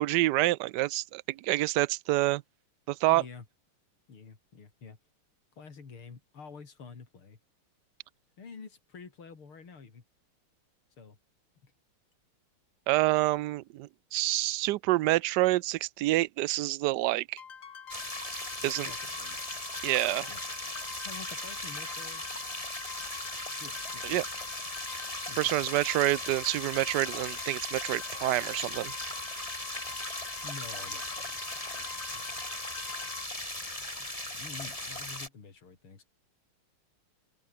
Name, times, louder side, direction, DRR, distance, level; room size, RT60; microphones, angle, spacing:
voice 1, 0.0-2.4 2.9-3.2 12.9-17.4 18.6-18.9 19.8-20.3 24.0-24.2 25.4-28.9, right 17 dB, 75° right, 0.9 m, -27 dB
voice 2, 3.1-3.5 4.1-5.0 5.6-7.4 8.4-10.0 11.0-11.2 11.6-11.7 18.6-19.4 20.3-20.4 21.0-22.3 23.6-24.3 25.3-25.6 30.4-32.5 34.0-34.1 34.3-36.1, left 5 dB, 75° left, 4.4 m, -48 dB
sound 1, 17.4-33.2, left 7 dB, 45° left, 1.5 m, -45 dB
sound 2, 17.9-35.3, left 1 dB, 15° left, 4.7 m, -38 dB
open air
omnidirectional pair, 2.3 m